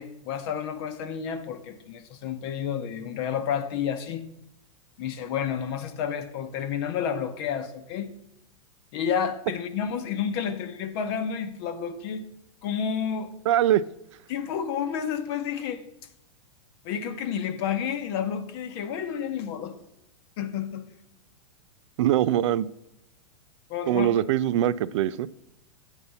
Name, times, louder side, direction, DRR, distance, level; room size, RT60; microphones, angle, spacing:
voice 1, 0.0-4.3 5.0-8.1 8.9-12.3 12.6-13.3 14.3-15.8 16.8-19.8 20.4-20.9 23.7-24.2, left 8 dB, 50° left, 0.9 m, -30 dB
voice 2, 13.5-13.8 22.0-22.7 23.9-25.3, right 11 dB, 65° right, 0.4 m, -22 dB
9.0 x 4.2 x 6.9 m
hypercardioid pair, 135°, 17 cm